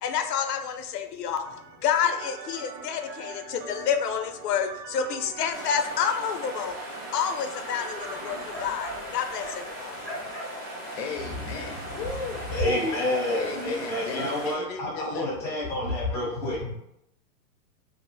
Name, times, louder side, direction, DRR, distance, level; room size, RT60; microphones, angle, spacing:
voice 1, 0.0-1.5 1.8-6.7 7.1-10.0, left 7 dB, 90° left, 7 dB, 0.6 m, -29 dB
sound 1, 1.4-8.4, right 5 dB, 90° right, 0.7 m, -43 dB
sound 2, 5.5-14.5, equal, 15° right, 0.3 m, -37 dB
voice 2, 10.7-12.5 13.3-15.6, left 4 dB, 45° left, 3 dB, 0.5 m, -36 dB
voice 3, 12.5-16.7, left 1 dB, 5° left, -5 dB, 0.7 m, -29 dB
2.5 x 2.0 x 3.9 m, 0.81 s
hypercardioid pair, 145°, 46 cm